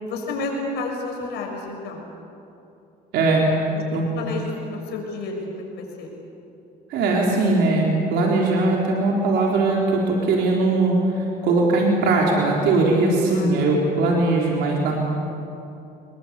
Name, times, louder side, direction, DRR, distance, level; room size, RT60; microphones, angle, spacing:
voice 1, 0.0-2.0 4.1-6.1 13.3-13.9, left 3 dB, 80° left, 1 dB, 6.3 m, -31 dB
voice 2, 3.1-3.4 3.9-4.0 6.9-15.0, right 2 dB, 85° right, -2 dB, 4.0 m, -20 dB
26.0 x 22.0 x 8.4 m, 2.8 s
cardioid pair, 110°, 17 cm